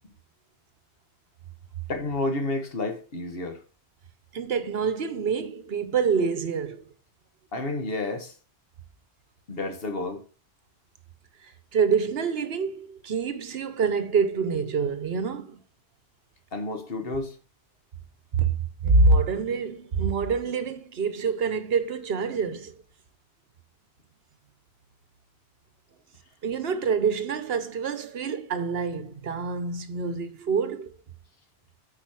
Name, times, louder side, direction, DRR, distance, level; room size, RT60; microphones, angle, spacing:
voice 1, 1.9-3.6 7.5-8.3 9.5-10.2 16.5-17.4, left 2 dB, 65° left, 1.5 m, -30 dB
voice 2, 4.3-6.8 11.7-15.6 18.3-18.5 18.8-22.7 26.4-30.9, right 4 dB, 70° right, 1.1 m, -26 dB
8.7 x 4.9 x 4.7 m
omnidirectional pair, 1.1 m